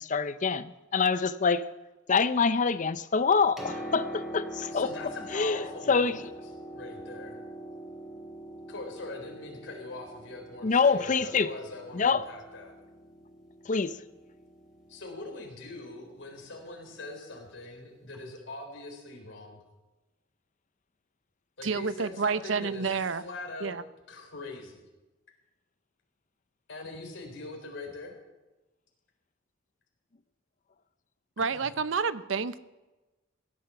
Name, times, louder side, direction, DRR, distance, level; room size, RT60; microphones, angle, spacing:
voice 1, 0.0-1.6 2.1-4.9 5.3-6.2 10.6-11.5 11.9-12.2 13.7-14.0, left 5 dB, 40° left, 14 dB, 0.6 m, -26 dB
Piano, 3.3-17.0 18.1-18.2, equal, 5° right, 3.0 m, -44 dB
voice 2, 4.7-6.3 6.7-7.4 8.7-12.7 14.9-19.6 21.6-23.7 24.1-24.8 26.7-28.2 31.4-31.7, left 2 dB, 80° left, 2 dB, 3.9 m, -42 dB
voice 3, 21.6-23.2 23.6-23.8 31.4-32.6, right 5 dB, 90° right, 15 dB, 0.7 m, -29 dB
16.5 x 10.5 x 5.8 m, 1.1 s
head